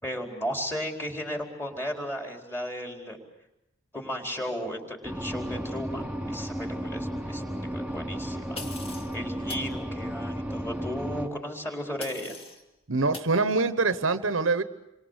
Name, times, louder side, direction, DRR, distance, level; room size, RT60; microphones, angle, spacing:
voice 1, 0.0-3.2 3.9-7.4 7.7-8.6 9.1-12.3, equal, 10° left, 2 dB, 4.3 m, -35 dB
sound 1, 5.0-11.3, equal, 5° right, 3.1 m, -33 dB
sound 2, 8.5-9.1 9.5-9.7 12.0-12.6 13.1-13.3, left 2 dB, 30° left, 2.3 m, -41 dB
voice 2, 12.9-14.6, right 3 dB, 75° right, 12 dB, 1.1 m, -24 dB
28.0 x 24.5 x 8.2 m, 0.90 s
head